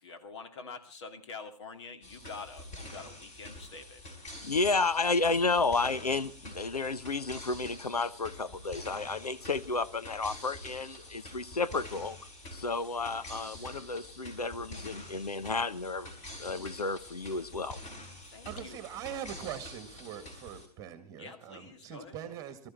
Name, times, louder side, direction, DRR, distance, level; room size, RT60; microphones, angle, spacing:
voice 1, 0.0-4.1 18.3-18.8 21.2-22.2, left 4 dB, 45° left, 2.3 m, -46 dB
sound 1, 2.0-20.7, left 1 dB, 25° left, 4.7 m, -47 dB
voice 2, 4.4-12.2 12.5-16.1 16.4-17.8, left 3 dB, 75° left, 0.9 m, -31 dB
voice 3, 18.5-22.6, right 9 dB, 20° right, 1.9 m, -42 dB
20.5 x 13.5 x 4.3 m
figure-of-eight pair, 125°, 20 cm